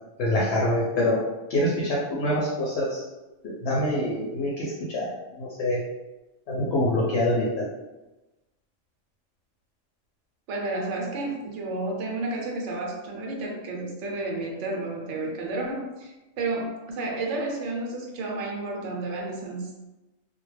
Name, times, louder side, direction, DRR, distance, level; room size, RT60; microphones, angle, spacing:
voice 1, 0.2-1.2 1.5-3.0 3.4-5.1 5.4-5.8 6.5-7.7, left 1 dB, 60° left, -4 dB, 0.7 m, -25 dB
voice 2, 10.5-19.7, right 2 dB, 65° right, 0 dB, 0.9 m, -31 dB
2.3 x 2.1 x 3.1 m, 1.1 s
omnidirectional pair, 1.4 m